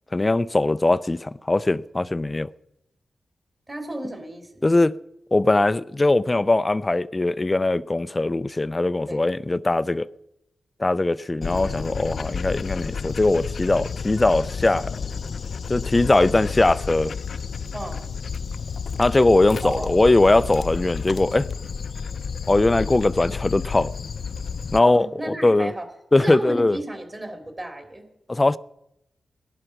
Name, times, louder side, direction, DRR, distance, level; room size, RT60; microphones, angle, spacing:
voice 1, 0.1-2.5 4.6-4.9 5.3-10.1 10.8-15.0 15.7-17.1 19.0-21.5 22.5-23.9 24.7-25.7 26.1-26.8 28.3-28.6, left 2 dB, 25° left, 0.5 m, -20 dB
voice 2, 3.7-4.7 9.1-9.3 17.7-18.0 19.6-20.0 24.8-25.9 26.1-28.1, right 1 dB, 25° right, 3.0 m, -33 dB
Dog, 11.4-24.8, left 5 dB, 65° left, 0.6 m, -31 dB
17.5 x 11.5 x 6.0 m
cardioid pair, 80°, 0 cm